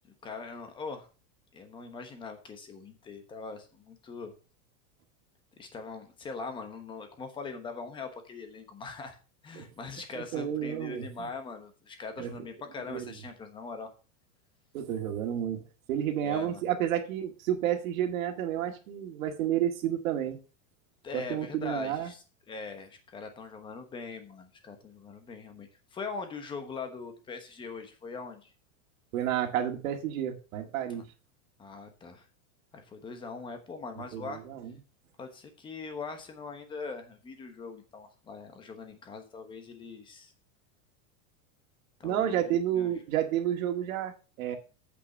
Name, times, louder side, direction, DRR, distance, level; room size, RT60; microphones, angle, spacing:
voice 1, 0.2-1.1 1.5-4.3 5.6-9.2 9.4-13.9 16.2-16.6 21.0-28.5 31.0-31.1 31.6-32.2 32.7-34.4 35.2-40.3 42.0-42.9, left 4 dB, 10° left, 7 dB, 1.0 m, -41 dB
voice 2, 10.2-11.3 12.2-12.3 12.9-13.1 14.7-20.4 21.1-22.1 29.1-31.0 34.1-34.8 42.0-44.6, right 10 dB, 70° right, 5 dB, 2.0 m, -31 dB
8.3 x 6.1 x 5.4 m, 0.34 s
supercardioid pair, 175°, 43 cm